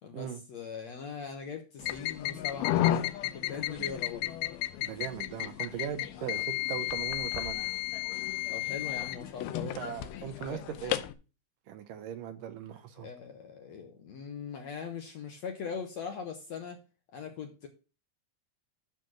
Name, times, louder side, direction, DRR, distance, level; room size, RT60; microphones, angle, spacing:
voice 1, 0.0-4.3 6.3-6.4 8.5-10.6 13.0-16.8 17.1-17.7, left 6 dB, 65° left, 1.9 m, -41 dB
sound 1, 1.8-11.1, left 14 dB, 85° left, 2.7 m, -33 dB
voice 2, 4.8-7.7 9.6-11.0 11.7-13.1, right 9 dB, 70° right, 2.3 m, -39 dB
12.5 x 4.2 x 6.2 m
omnidirectional pair, 4.3 m